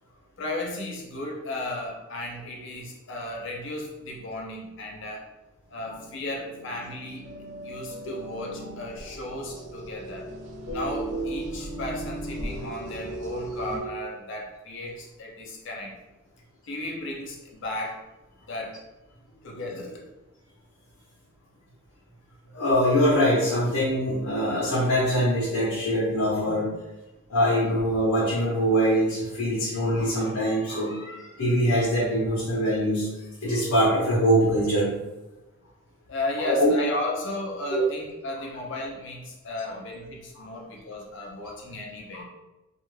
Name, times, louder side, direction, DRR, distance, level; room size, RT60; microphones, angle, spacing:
voice 1, 0.4-5.3 5.7-7.3 7.6-10.3 10.7-15.9 16.7-18.0 18.5-18.8 19.3-20.1 36.1-42.2, left 2 dB, 55° left, -1 dB, 0.6 m, -35 dB
sound 1, 5.7-13.8, right 2 dB, 55° right, 0.7 m, -36 dB
voice 2, 22.5-26.7 27.3-33.1 33.4-34.9 36.4-36.7 37.7-37.8 39.6-39.7 42.1-42.2, equal, 85° left, -7 dB, 0.8 m, -23 dB
2.4 x 2.2 x 3.1 m, 1.0 s
head